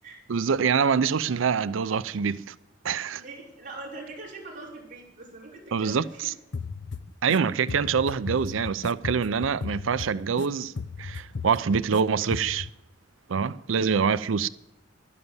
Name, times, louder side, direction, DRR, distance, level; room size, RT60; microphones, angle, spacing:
voice 1, 0.3-2.5 2.8-3.2 5.7-6.3 7.2-10.7 11.0-12.7 13.3-14.5, right 6 dB, 80° right, 0.5 m, -25 dB
voice 2, 3.1-6.3, right 2 dB, 45° right, 5.6 m, -42 dB
sound 1, 6.5-7.4 7.7-10.5 10.8-12.0 12.3-12.7, left 4 dB, 65° left, 0.6 m, -36 dB
12.0 x 11.0 x 8.0 m
head